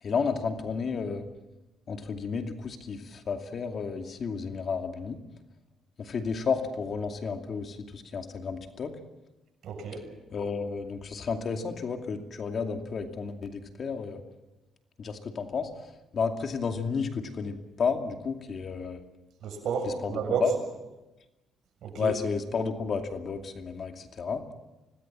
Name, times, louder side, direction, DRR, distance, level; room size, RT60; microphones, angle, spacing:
voice 1, 0.0-1.2 1.9-5.2 6.0-8.9 10.3-14.2 15.0-15.7 16.1-19.0 20.0-20.5 22.0-24.5, left 5 dB, 50° left, 5 dB, 2.5 m, -32 dB
voice 2, 9.6-10.0 19.4-20.5 21.8-22.1, right 6 dB, 70° right, 4 dB, 6.9 m, -31 dB
25.5 x 19.0 x 7.5 m, 1.1 s
cardioid pair, 90°, 0 cm